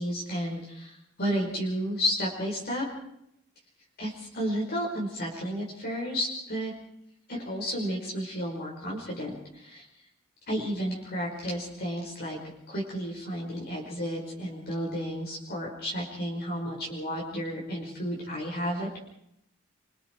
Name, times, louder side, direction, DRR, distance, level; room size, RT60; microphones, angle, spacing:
voice 1, 0.0-2.9 4.0-6.7 7.3-9.8 10.5-12.4 12.7-19.0, equal, 50° left, -3 dB, 5.1 m, -32 dB
28.0 x 24.0 x 4.6 m, 0.78 s
head